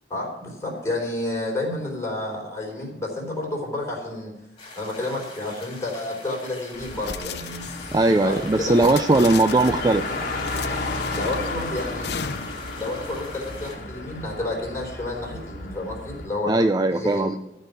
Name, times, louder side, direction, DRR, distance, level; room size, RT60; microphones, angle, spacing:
voice 1, 0.1-4.3 4.7-7.6 8.2-9.0 11.1-12.2 12.8-16.5 16.9-17.3, left 2 dB, 15° left, -3 dB, 4.0 m, -30 dB
sound 1, 4.6-13.8, left 3 dB, 30° left, 3.2 m, -44 dB
Car, 6.7-16.3, left 2 dB, 50° left, 1.7 m, -33 dB
sound 2, 7.0-8.1 8.7-9.9 10.4-11.5 12.0-12.7, left 7 dB, 65° left, 0.7 m, -35 dB
voice 2, 7.9-10.2 16.5-17.4, right 2 dB, 20° right, 9 dB, 0.4 m, -19 dB
13.5 x 5.3 x 8.3 m, 0.96 s
head